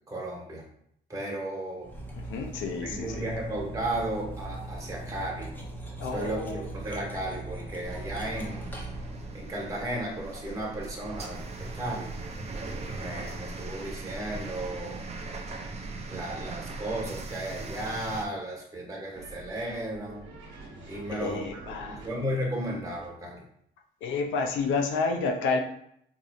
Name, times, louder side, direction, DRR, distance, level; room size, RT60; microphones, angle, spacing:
voice 1, 0.1-0.7 1.1-1.9 2.8-5.5 6.1-8.8 9.3-12.2 12.8-15.0 16.1-20.3 20.8-23.4, right 1 dB, 15° right, -3 dB, 1.3 m, -34 dB
Cutlery silverware, 1.8-9.6, right 2 dB, 10° left, 0.7 m, -40 dB
voice 2, 2.2-3.3 6.0-6.6 21.1-22.0 24.0-25.6, left 4 dB, 90° left, 3 dB, 0.6 m, -30 dB
sound 1, 7.8-18.3, right 3 dB, 35° right, 0.5 m, -39 dB
sound 2, 19.2-23.2, right 3 dB, 75° right, 0.9 m, -47 dB
4.0 x 2.7 x 2.4 m, 0.71 s
cardioid pair, 115°, 19 cm